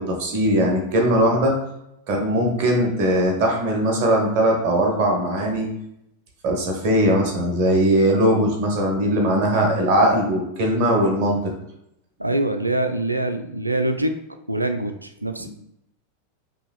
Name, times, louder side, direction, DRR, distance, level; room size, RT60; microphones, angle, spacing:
voice 1, 0.0-1.6 2.1-5.7 6.4-11.5 15.4-15.5, right 1 dB, 45° right, 1 dB, 1.1 m, -20 dB
voice 2, 12.2-14.1 14.5-15.5, right 1 dB, 85° right, 7 dB, 0.3 m, -24 dB
5.2 x 3.1 x 2.4 m, 0.80 s
figure-of-eight pair, 90°, 0 cm